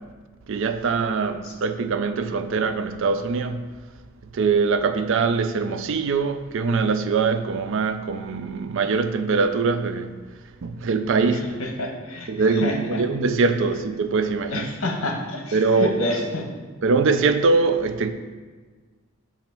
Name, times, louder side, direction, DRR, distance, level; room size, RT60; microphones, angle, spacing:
voice 1, 0.5-3.7 4.3-10.2 10.6-11.6 12.3-14.7 15.5-15.9 16.8-18.1, right 4 dB, 65° right, 0.4 m, -22 dB
voice 2, 11.3-13.0 14.5-16.4, left 1 dB, 80° left, 1.1 m, -29 dB
7.1 x 2.9 x 5.9 m
head